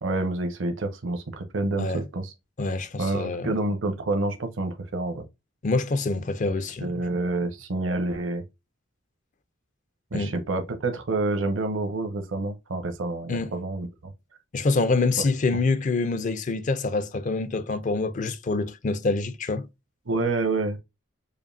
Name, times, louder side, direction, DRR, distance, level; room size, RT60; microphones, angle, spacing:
voice 1, 0.0-2.3 3.0-5.2 6.8-8.4 10.1-13.9 20.1-20.8, right 2 dB, 75° right, 0.7 m, -28 dB
voice 2, 2.6-3.5 5.6-6.9 10.1-10.3 13.3-13.5 14.5-19.7, left 3 dB, 40° left, 0.4 m, -26 dB
5.0 x 2.5 x 2.6 m
head